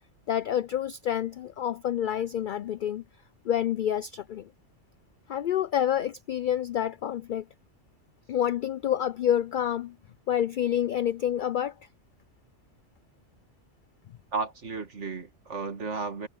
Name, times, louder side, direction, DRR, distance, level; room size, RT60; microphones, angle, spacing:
voice 1, 0.3-3.0 3.5-4.4 5.3-7.4 8.3-9.9 10.3-11.7, left 10 dB, 60° left, 0.5 m, -28 dB
voice 2, 14.3-16.3, right 4 dB, 75° right, 2.3 m, -33 dB
omnidirectional pair, 1.2 m